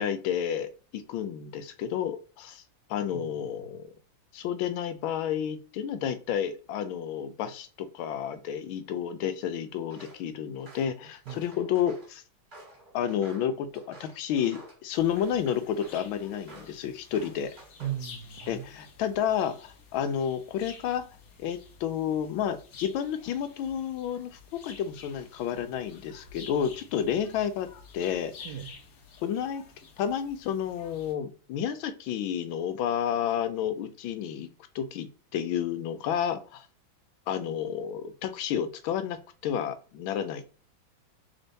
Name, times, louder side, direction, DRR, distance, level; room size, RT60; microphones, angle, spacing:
voice 1, 0.0-2.6 2.9-3.9 4.3-12.2 12.9-17.5 18.5-21.1 21.4-27.7 27.9-28.5 29.2-29.6 30.0-34.5 34.7-36.7 37.3-40.5, left 9 dB, 80° left, 1.3 m, -31 dB
voice 2, 3.1-3.8 11.3-11.4 17.8-18.7 28.4-28.7, right 10 dB, 75° right, 0.9 m, -38 dB
Walk footsteps, 9.9-10.2 10.6-12.1 12.5-14.8 15.2-16.0 16.5-16.8 17.1-18.0 18.4-18.8, right 2 dB, 30° right, 2.1 m, -50 dB
sound 1, 14.9-31.1, left 5 dB, 60° left, 1.0 m, -51 dB
3.6 x 3.5 x 3.9 m
omnidirectional pair, 2.2 m